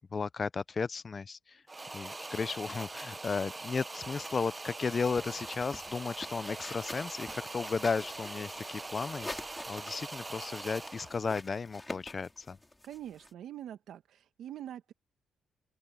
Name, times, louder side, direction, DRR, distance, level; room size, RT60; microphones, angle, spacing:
voice 1, 0.1-1.6 1.9-12.6, left 5 dB, 35° left, 0.6 m, -34 dB
sound 1, 1.7-11.3, right 2 dB, 20° right, 0.9 m, -42 dB
sound 2, 5.1-13.3, left 2 dB, 15° left, 3.9 m, -47 dB
voice 2, 12.8-14.9, right 11 dB, 75° right, 2.0 m, -44 dB
open air
cardioid pair, 90°, 0 cm